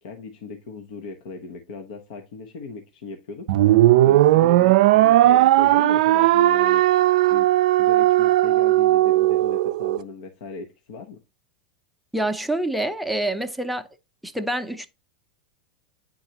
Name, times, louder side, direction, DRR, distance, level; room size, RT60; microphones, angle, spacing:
voice 1, 0.0-6.8 7.3-11.2, left 4 dB, 70° left, 0.9 m, -38 dB
sound 1, 3.5-10.0, right 15 dB, 70° right, 0.4 m, -17 dB
voice 2, 12.1-13.9 14.2-14.9, right 1 dB, ahead, 0.6 m, -26 dB
8.9 x 4.0 x 2.9 m
hypercardioid pair, 115°, 4 cm